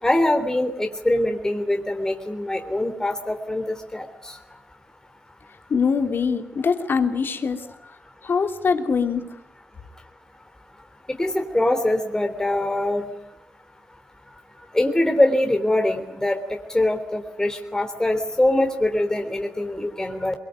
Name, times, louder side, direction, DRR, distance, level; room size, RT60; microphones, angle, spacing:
voice 1, 0.0-4.4 11.1-13.1 14.7-20.3, left 1 dB, 15° left, 5 dB, 3.5 m, -23 dB
voice 2, 5.7-7.7 8.2-9.2, left 5 dB, 55° left, 6 dB, 3.1 m, -23 dB
23.5 x 23.5 x 9.4 m, 0.77 s
cardioid pair, 70°, 4 cm